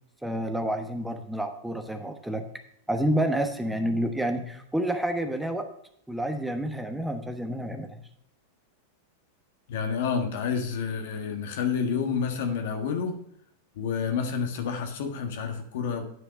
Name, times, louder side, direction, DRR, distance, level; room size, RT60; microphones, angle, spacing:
voice 1, 0.2-2.4 2.9-5.7 6.1-8.1, right 1 dB, 5° right, 6 dB, 1.1 m, -29 dB
voice 2, 9.7-13.2 13.7-16.0, left 6 dB, 65° left, 5 dB, 1.5 m, -29 dB
9.8 x 5.7 x 5.3 m, 0.71 s
hypercardioid pair, 95°, 0 cm